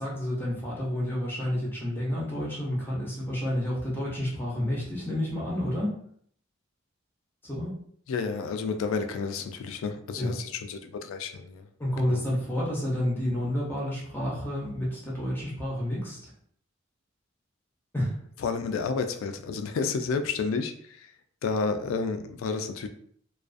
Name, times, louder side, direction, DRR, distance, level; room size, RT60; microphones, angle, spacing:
voice 1, 0.0-6.0 7.4-7.8 10.2-10.4 11.8-16.3 17.9-18.2, left 1 dB, 10° left, -5 dB, 0.7 m, -30 dB
voice 2, 8.1-11.7 12.1-12.2 18.4-21.1 21.4-22.9, left 4 dB, 85° left, 8 dB, 0.3 m, -30 dB
2.4 x 2.3 x 2.4 m, 0.62 s
head